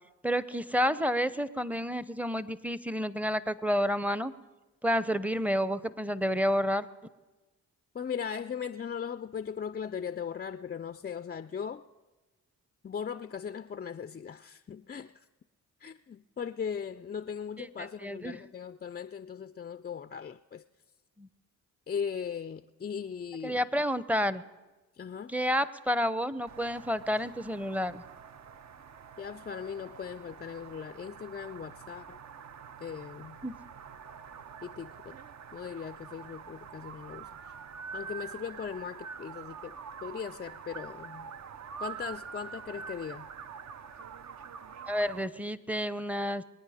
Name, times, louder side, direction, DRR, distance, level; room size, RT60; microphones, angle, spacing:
voice 1, 0.2-4.3 4.8-6.9 17.6-17.7 18.0-18.4 21.2-21.3 23.4-24.4 25.3-28.0 33.4-33.5 44.9-46.4, equal, 5° right, 0.7 m, -30 dB
voice 2, 7.9-11.8 12.8-15.3 15.8-20.6 21.9-23.7 25.0-25.3 29.2-32.2 32.8-33.4 34.6-35.2 35.5-37.5 37.9-41.3 41.8-43.3, left 7 dB, 25° left, 0.4 m, -38 dB
sound 1, 26.5-45.3, right 6 dB, 45° right, 0.7 m, -46 dB
22.5 x 9.2 x 5.0 m
supercardioid pair, 50°, 37 cm